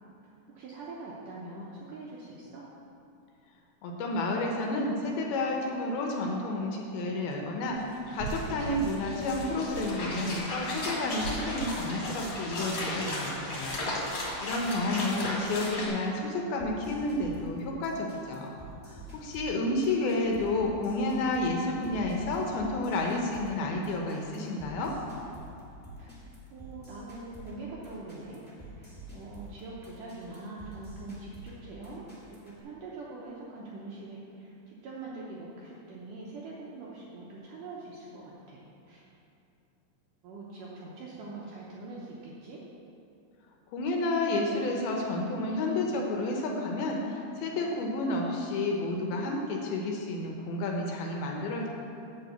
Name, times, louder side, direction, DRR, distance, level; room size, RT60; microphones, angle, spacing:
voice 1, 0.5-2.7 15.0-16.0 26.0-26.2 26.5-28.4 28.7-39.1 40.2-42.6, right 2 dB, 75° right, -5 dB, 2.0 m, -43 dB
voice 2, 3.8-18.5 18.9-24.9 43.7-51.7, left 2 dB, 75° left, 0 dB, 2.5 m, -31 dB
sound 1, 7.7-7.8 7.9-15.9, left 1 dB, 40° left, 2.1 m, -35 dB
sound 2, 16.6-32.6, right 1 dB, 10° left, 0.4 m, -47 dB
10.5 x 4.6 x 8.0 m, 2.7 s
omnidirectional pair, 4.9 m